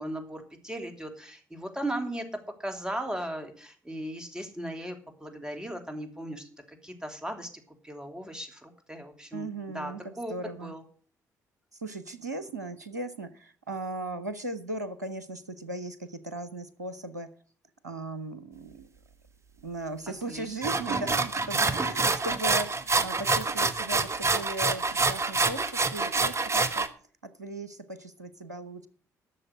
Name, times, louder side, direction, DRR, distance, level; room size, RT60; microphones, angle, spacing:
voice 1, 0.0-2.2 2.6-7.5 7.8-10.3 10.6-10.8 20.3-20.5 21.6-21.7, right 1 dB, 10° right, 5 dB, 3.0 m, -37 dB
voice 2, 9.3-10.8 11.8-17.3 17.8-18.9 19.6-26.9 27.2-28.9, right 2 dB, 90° right, 13 dB, 0.7 m, -37 dB
sound 1, 20.6-26.9, right 3 dB, 30° right, 1.2 m, -27 dB
12.0 x 6.7 x 7.6 m, 0.42 s
figure-of-eight pair, 45°, 9 cm